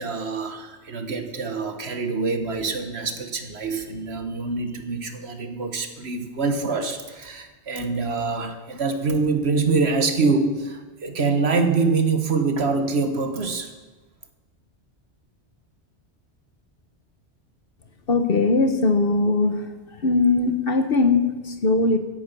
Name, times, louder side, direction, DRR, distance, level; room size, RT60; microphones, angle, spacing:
voice 1, 0.0-13.7, right 4 dB, 65° right, 7 dB, 1.6 m, -25 dB
voice 2, 18.1-19.7 20.0-22.0, left 3 dB, 55° left, 8 dB, 1.2 m, -20 dB
15.0 x 9.9 x 6.8 m, 1.2 s
omnidirectional pair, 1.2 m